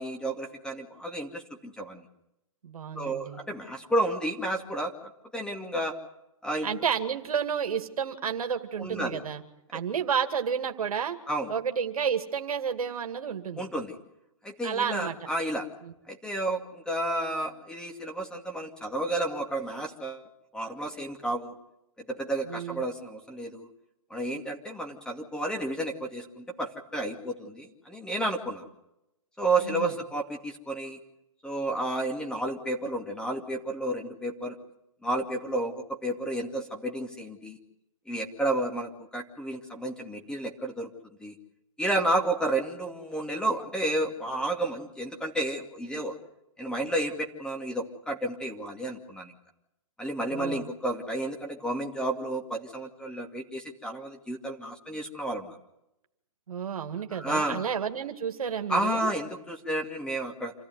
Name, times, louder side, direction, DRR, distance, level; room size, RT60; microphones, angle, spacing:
voice 1, 0.0-2.0 3.0-5.9 6.4-6.7 8.8-9.2 9.7-9.8 11.3-11.5 13.6-13.9 14.4-15.7 16.1-20.2 20.5-21.5 22.1-23.7 24.1-28.7 29.4-31.0 31.4-34.6 35.0-37.6 38.1-40.9 41.2-41.3 41.8-46.2 46.6-49.3 50.0-55.6 57.1-57.6 58.7-60.5, right 1 dB, 5° left, 3 dB, 2.4 m, -31 dB
voice 2, 2.6-3.4 6.6-9.4 9.7-11.2 11.5-13.7 14.6-15.2 15.8-15.9 22.4-22.8 29.6-30.0 50.3-50.7 56.5-59.1, right 7 dB, 85° right, 6 dB, 2.3 m, -31 dB
27.5 x 15.0 x 9.5 m, 0.85 s
hypercardioid pair, 140°, 18 cm